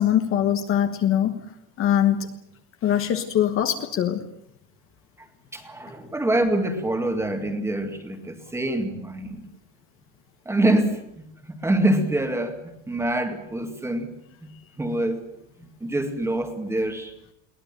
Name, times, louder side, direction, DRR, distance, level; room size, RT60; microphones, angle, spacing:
voice 1, 0.0-1.4 1.8-2.3 2.8-4.3, left 10 dB, 30° left, 7 dB, 1.4 m, -22 dB
voice 2, 5.5-9.5 10.5-12.6 12.9-14.1 14.4-14.5 14.8-15.2 15.8-17.1, right 1 dB, 5° right, 6 dB, 2.1 m, -25 dB
22.5 x 18.5 x 9.1 m, 0.78 s
cardioid pair, 180°, 41 cm